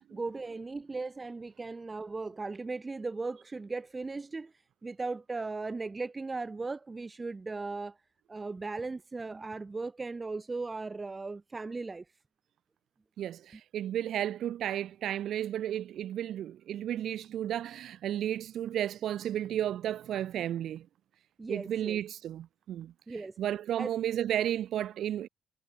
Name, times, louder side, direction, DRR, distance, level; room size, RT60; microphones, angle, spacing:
voice 1, 0.1-4.5 4.8-8.0 8.3-12.0 21.4-22.0 23.1-23.4 23.8-23.9, right 3 dB, 25° right, 4.9 m, -37 dB
voice 2, 13.2-20.9 21.5-22.9 23.4-25.3, right 11 dB, 75° right, 1.2 m, -33 dB
cardioid pair, 90°, 0 cm